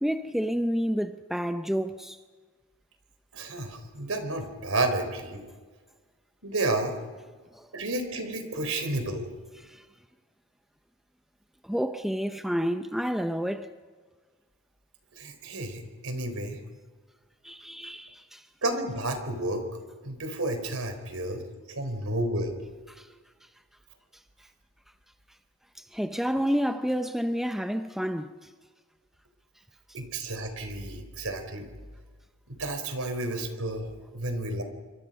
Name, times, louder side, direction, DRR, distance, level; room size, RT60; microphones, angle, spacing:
voice 1, 0.0-2.2 7.5-7.7 9.6-9.8 11.6-13.7 17.4-18.4 22.9-23.1 25.9-28.3, equal, ahead, 0.6 m, -29 dB
voice 2, 3.3-5.4 6.4-7.0 7.7-9.3 15.2-16.6 18.6-19.7 20.0-21.4 21.7-22.5 29.9-31.7 32.5-34.6, right 2 dB, 80° right, 4.0 m, -31 dB
27.5 x 24.5 x 5.4 m
head